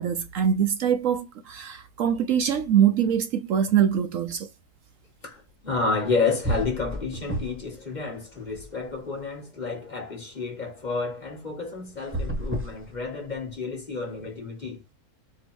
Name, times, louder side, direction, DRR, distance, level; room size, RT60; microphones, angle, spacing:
voice 1, 0.0-4.5, right 9 dB, 65° right, 1.0 m, -23 dB
voice 2, 5.2-14.8, left 4 dB, 35° left, 1.2 m, -30 dB
sound 1, 6.0-6.1 6.4-7.8 8.1-9.2 11.9-13.5, right 1 dB, 10° right, 0.7 m, -32 dB
4.1 x 2.8 x 4.5 m
omnidirectional pair, 1.6 m